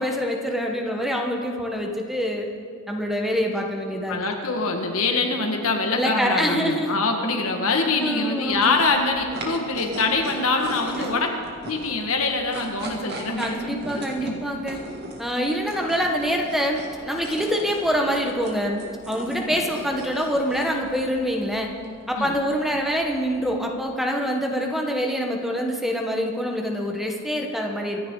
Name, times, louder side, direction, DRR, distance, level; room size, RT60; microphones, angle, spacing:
voice 1, 0.0-2.5 2.9-4.2 5.9-7.0 8.0-8.7 11.0-11.2 13.4-14.8 15.2-18.8 19.1-21.7 22.1-28.0, equal, ahead, 1 dB, 1.2 m, -25 dB
voice 2, 4.1-11.3 11.7-13.8 14.2-14.4 22.2-22.3, left 3 dB, 70° left, 3 dB, 1.8 m, -24 dB
sound 1, 8.5-23.8, right 1 dB, 50° right, 2.3 m, -39 dB
25.0 x 10.5 x 3.9 m, 2.2 s
head